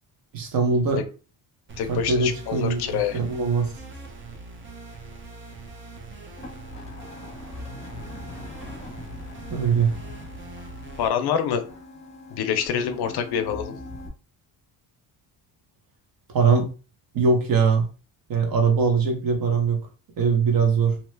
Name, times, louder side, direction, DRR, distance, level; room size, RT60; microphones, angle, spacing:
voice 1, 0.3-1.0 1.9-3.7 9.5-9.9 16.3-16.7 17.1-17.9 18.3-19.9 20.2-21.0, right 5 dB, 50° right, 0.9 m, -21 dB
sound 1, 1.7-11.1, right 3 dB, 30° right, 0.4 m, -42 dB
voice 2, 1.8-3.2 11.0-11.6 12.3-13.7, left 8 dB, 60° left, 0.5 m, -26 dB
sound 2, 6.4-14.1, left 2 dB, 15° left, 0.8 m, -41 dB
2.8 x 2.2 x 3.2 m
cardioid pair, 160°, 44 cm